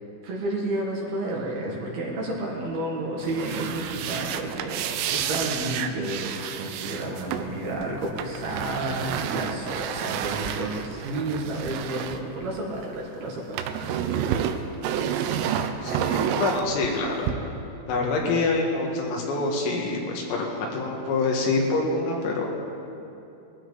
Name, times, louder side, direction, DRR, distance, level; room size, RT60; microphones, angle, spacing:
voice 1, 0.2-13.8, right 2 dB, 60° right, -3 dB, 3.0 m, -31 dB
sound 1, 3.2-13.0 13.3-17.3, right 9 dB, 85° right, 3.4 m, -30 dB
voice 2, 15.8-17.3 17.9-22.5, left 3 dB, 80° left, -1 dB, 4.6 m, -26 dB
21.0 x 15.0 x 4.1 m, 2.8 s
omnidirectional pair, 6.0 m